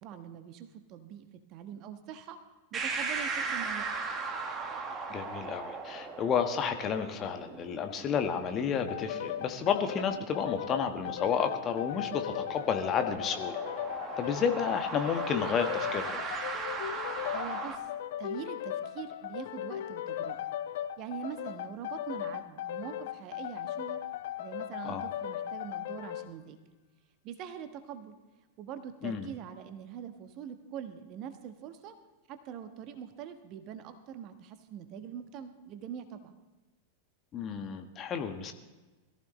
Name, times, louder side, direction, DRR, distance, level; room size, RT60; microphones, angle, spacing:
voice 1, 0.0-2.4 2.7-3.9 17.3-17.9 18.2-20.4 21.0-24.0 24.4-26.6 27.2-28.1 28.6-32.0 32.3-36.4, right 8 dB, 40° right, 8 dB, 1.2 m, -43 dB
sound 1, 2.7-17.8, right 4 dB, 20° right, 1.7 m, -39 dB
voice 2, 5.1-13.6 14.2-16.2 24.8-25.0 29.0-29.3 37.3-38.5, left 7 dB, 30° left, 6 dB, 1.4 m, -31 dB
sound 2, 8.9-26.3, left 11 dB, 55° left, 0.6 m, -37 dB
21.5 x 14.5 x 3.2 m, 1.2 s
figure-of-eight pair, 90°, 0 cm